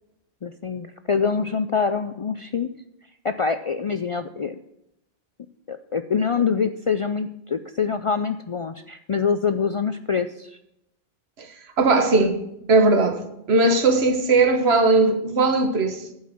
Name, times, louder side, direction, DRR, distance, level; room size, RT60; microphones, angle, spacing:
voice 1, 0.4-2.7 3.2-4.6 5.7-10.6, left 5 dB, 55° left, 0.3 m, -25 dB
voice 2, 11.8-12.4 12.7-16.0, right 3 dB, 80° right, 1.5 m, -19 dB
11.5 x 5.6 x 7.6 m
omnidirectional pair, 1.1 m